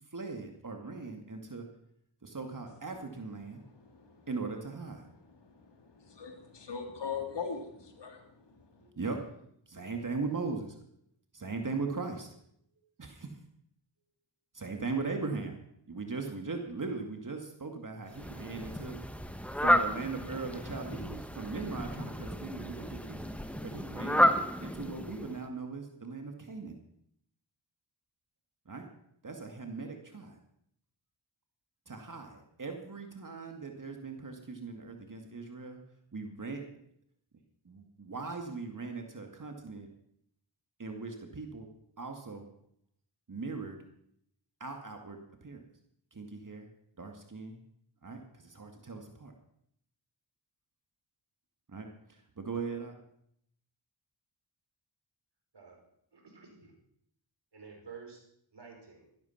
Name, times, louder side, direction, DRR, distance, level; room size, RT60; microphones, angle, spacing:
voice 1, 0.1-1.7 2.2-3.6 4.3-5.1 8.8-10.8 11.3-12.3 13.0-13.4 14.5-15.6 15.9-19.0 19.6-24.3 24.6-26.8 28.7-28.9 29.2-30.4 31.9-35.8 36.1-36.6 37.6-39.9 40.8-41.7 42.0-42.5 43.3-43.8 44.6-45.6 46.1-46.7 47.0-47.6 48.0-49.3 51.7-52.9, right 4 dB, 40° right, 4 dB, 2.2 m, -39 dB
voice 2, 6.0-8.2, left 6 dB, 60° left, 4 dB, 2.9 m, -39 dB
Fowl, 18.1-25.5, equal, 5° left, 1.2 m, -32 dB
voice 3, 55.5-55.8 56.1-56.7 57.5-58.2 58.5-59.1, right 5 dB, 60° right, 1 dB, 5.1 m, -51 dB
13.5 x 12.0 x 5.8 m, 0.71 s
cardioid pair, 55°, 47 cm